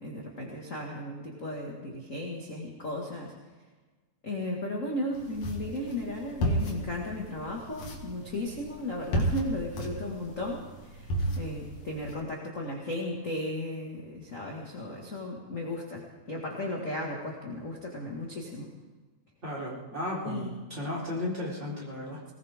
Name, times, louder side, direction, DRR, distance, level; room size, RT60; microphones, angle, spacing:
voice 1, 0.0-3.3 4.2-11.1 11.4-16.0 16.3-18.7 20.2-20.5, left 1 dB, 30° left, -1 dB, 1.8 m, -35 dB
sound 1, 5.1-12.1, equal, 70° left, 3.2 m, -34 dB
voice 2, 19.4-20.4 20.7-22.2, left 1 dB, 20° right, -5 dB, 4.4 m, -34 dB
20.0 x 19.5 x 3.7 m, 1.3 s
omnidirectional pair, 3.4 m